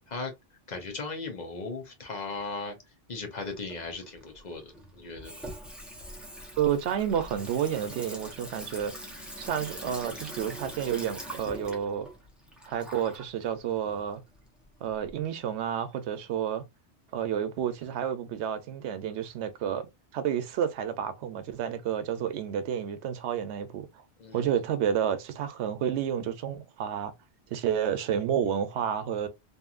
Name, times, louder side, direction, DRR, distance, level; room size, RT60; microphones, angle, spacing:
voice 1, 0.7-2.8 3.1-5.5 24.2-24.5, left 3 dB, 45° left, 0.8 m, -37 dB
Water tap faucet / Sink (filling or washing), 3.4-15.1, right 1 dB, ahead, 0.5 m, -43 dB
voice 2, 6.6-8.9 9.4-12.1 12.7-14.2 14.8-16.6 17.1-19.9 20.1-23.9 24.3-27.1 27.5-29.3, right 9 dB, 90° right, 0.9 m, -30 dB
2.8 x 2.5 x 2.4 m
omnidirectional pair, 1.1 m